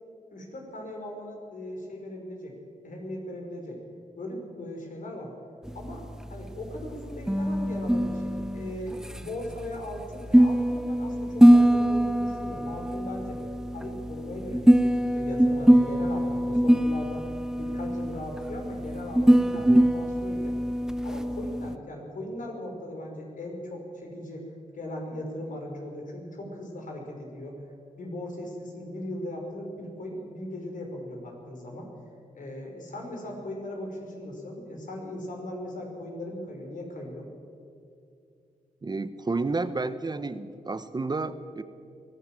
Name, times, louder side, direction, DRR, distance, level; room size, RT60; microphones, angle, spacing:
voice 1, 0.3-2.5 2.8-3.8 4.2-5.3 5.7-6.0 6.3-13.4 13.7-17.3 17.6-20.6 21.0-24.5 24.7-27.6 28.0-31.9 32.3-37.3, left 1 dB, 65° left, 1 dB, 5.4 m, -38 dB
sound 1, 5.7-21.8, equal, 5° right, 0.6 m, -23 dB
voice 2, 38.8-41.6, right 3 dB, 30° right, 12 dB, 0.9 m, -31 dB
22.5 x 15.5 x 7.6 m, 2.4 s
cardioid pair, 80°, 14 cm